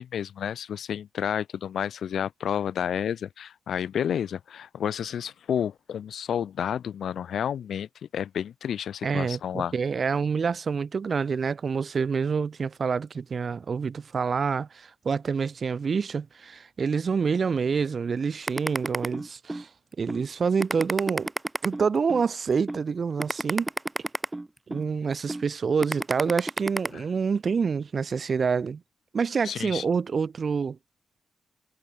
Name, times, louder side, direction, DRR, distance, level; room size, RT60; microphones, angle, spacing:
voice 1, 0.0-7.9 8.1-9.7 26.9-27.0 29.4-29.8, left 9 dB, 80° left, 2.5 m, -30 dB
voice 2, 9.0-19.7 20.0-21.3 21.6-23.7 24.7-28.8 29.1-30.8, right 5 dB, 50° right, 1.6 m, -27 dB
sound 1, 18.5-19.6 20.1-20.2 20.6-22.2 22.7-22.8 23.2-24.8 25.3-25.4 25.8-26.9, right 2 dB, 15° right, 1.3 m, -30 dB
cardioid pair, 105°, 0 cm